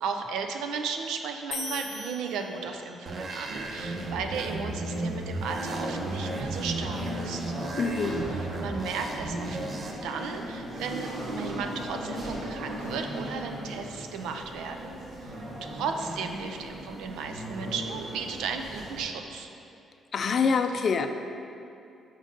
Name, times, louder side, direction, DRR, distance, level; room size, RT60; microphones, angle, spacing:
voice 1, 0.0-7.4 8.3-9.6 10.0-15.0 15.2-15.3 15.6-19.5, right 5 dB, 90° right, 5 dB, 0.4 m, -35 dB
sound 1, 1.5-3.1, left 3 dB, 85° left, 0.7 m, -38 dB
sound 2, 3.1-9.9, right 2 dB, 45° right, 0.6 m, -35 dB
sound 3, 3.5-19.0, right 1 dB, 60° right, 1.3 m, -37 dB
voice 2, 7.8-8.2 20.1-21.1, left 5 dB, 50° left, 7 dB, 0.4 m, -25 dB
5.2 x 5.1 x 3.8 m, 2.6 s
cardioid pair, 90°, 0 cm